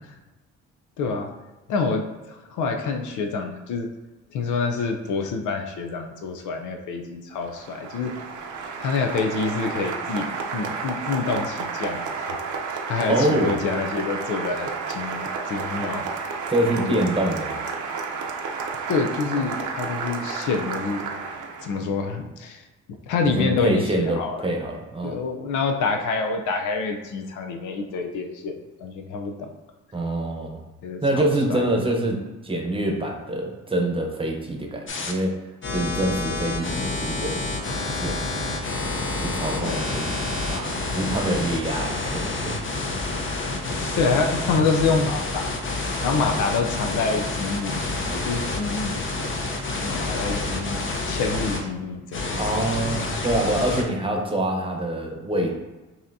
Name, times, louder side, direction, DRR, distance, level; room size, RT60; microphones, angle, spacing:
voice 1, 1.0-1.3 1.7-3.9 4.3-8.1 8.8-12.4 12.7-16.1 16.7-17.0 18.9-21.0 21.6-22.7 23.1-24.4 25.0-29.5 30.8-31.7 36.8-36.9 39.6-40.0 43.3-45.6 46.0-49.0 49.8-50.8 51.1-52.4, left 4 dB, 80° left, 3 dB, 0.5 m, -27 dB
Applause, 7.4-21.8, right 5 dB, 75° right, 0.7 m, -31 dB
voice 2, 13.1-13.5 16.5-17.6 23.2-25.2 29.9-30.6 31.0-35.3 35.7-37.5 37.8-38.3 39.2-40.1 40.5-42.9 52.4-55.5, right 1 dB, 20° right, 1 dB, 0.9 m, -25 dB
sound 1, 34.9-35.1 35.6-51.6 52.1-53.8, left 2 dB, 40° left, 0.7 m, -28 dB
5.5 x 2.8 x 2.6 m, 1.1 s
cardioid pair, 90°, 30 cm